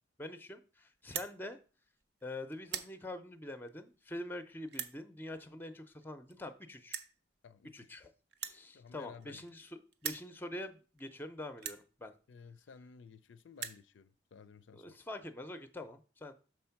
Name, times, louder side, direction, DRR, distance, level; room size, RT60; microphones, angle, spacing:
voice 1, 0.2-1.6 2.2-7.0 7.7-8.1 8.4-12.1 14.7-16.3, left 1 dB, 10° left, 0.5 m, -45 dB
sound 1, 1.0-1.3 2.0-2.2 2.5-2.9 3.7-3.8 4.7-5.0 6.0-6.1 6.3-6.4 6.9-7.1 8.3-9.6 9.9-10.3 11.0-11.1 11.6-11.8 12.7-12.8 13.1-13.2 13.4-13.8, right 8 dB, 55° right, 0.6 m, -41 dB
voice 2, 7.4-8.0 8.7-9.4 12.3-15.0, left 5 dB, 70° left, 0.4 m, -55 dB
6.2 x 4.3 x 5.7 m
head